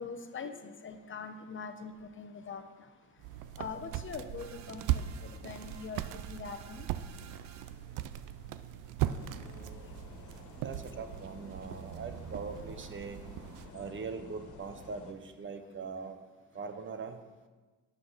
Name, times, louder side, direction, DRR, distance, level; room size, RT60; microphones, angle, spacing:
voice 1, 0.0-2.6 3.6-6.9, left 5 dB, 40° left, 7 dB, 0.9 m, -43 dB
sound 1, 3.2-13.7, right 12 dB, 90° right, 0.5 m, -39 dB
sound 2, 4.4-7.9, right 8 dB, 65° right, 0.8 m, -54 dB
sound 3, 9.0-15.1, left 4 dB, 75° left, 1.6 m, -51 dB
voice 2, 9.4-9.9 10.6-13.2 13.7-16.2 16.5-17.2, right 5 dB, 40° right, 8 dB, 1.0 m, -42 dB
11.0 x 8.2 x 4.1 m, 1.3 s
cardioid pair, 90°, 30 cm